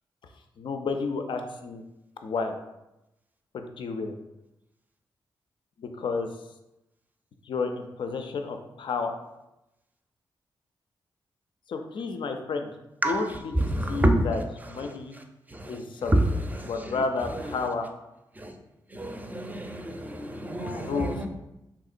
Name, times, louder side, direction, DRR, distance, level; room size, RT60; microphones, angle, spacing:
voice 1, 0.6-1.8 2.2-2.6 3.5-4.1 5.8-6.3 7.5-9.2 11.7-12.7 13.0-15.1 15.7-16.2 16.7-17.9 20.7-21.3, left 4 dB, 65° left, 5 dB, 0.4 m, -31 dB
voice 2, 13.7-14.2 15.6-15.7 16.1-16.2 16.5-16.7 18.4-18.5 18.9-21.3, right 1 dB, 20° right, 5 dB, 0.5 m, -27 dB
3.5 x 2.8 x 2.5 m, 0.92 s
cardioid pair, 65°, 9 cm